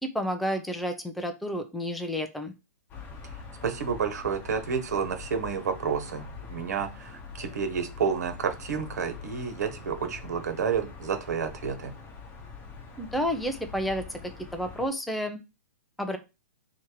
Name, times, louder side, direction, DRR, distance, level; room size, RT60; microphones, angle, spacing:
voice 1, 0.0-2.5 13.0-14.2 14.5-15.4 16.0-16.2, equal, ahead, 5 dB, 0.5 m, -30 dB
sound 1, 2.9-14.9, left 4 dB, 20° left, 1.0 m, -44 dB
voice 2, 3.6-11.9, right 6 dB, 75° right, 6 dB, 1.4 m, -30 dB
3.5 x 2.9 x 4.6 m, 0.26 s
hypercardioid pair, 150°, 9 cm